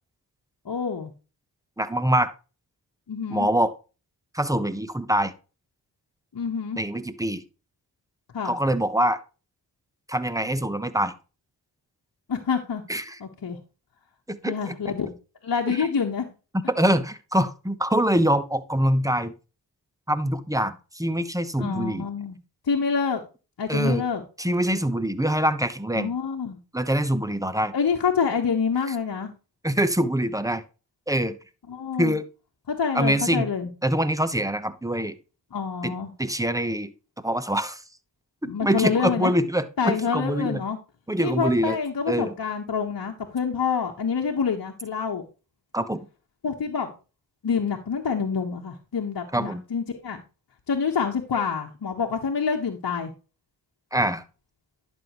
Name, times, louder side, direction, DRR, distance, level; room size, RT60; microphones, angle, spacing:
voice 1, 0.6-1.1 3.1-3.5 6.3-6.8 8.3-8.6 12.3-12.8 13.2-13.6 14.5-15.1 15.4-16.3 21.6-22.4 22.6-23.2 23.6-24.2 25.9-26.6 27.7-29.3 31.7-32.1 32.7-33.7 35.5-36.1 38.5-39.3 39.8-40.8 41.2-45.2 46.4-46.9 47.4-50.2 50.7-53.1, left 6 dB, 55° left, 1 dB, 1.3 m, -27 dB
voice 2, 1.8-2.3 3.3-3.7 4.3-5.3 6.8-7.4 8.4-9.2 10.1-11.1 12.9-13.2 14.3-14.7 15.7-15.9 16.7-19.3 20.1-22.1 23.7-24.0 24.4-26.1 26.7-27.7 29.6-30.6 31.1-31.4 32.0-32.3 32.9-33.5 33.8-35.2 35.8-35.9 36.2-36.9 37.2-37.8 38.4-40.6 41.1-41.8 42.1-42.3 45.7-46.1 49.3-49.6 53.9-54.2, right 1 dB, 10° right, 13 dB, 1.0 m, -24 dB
11.0 x 5.5 x 3.0 m, 0.32 s
cardioid pair, 45°, 43 cm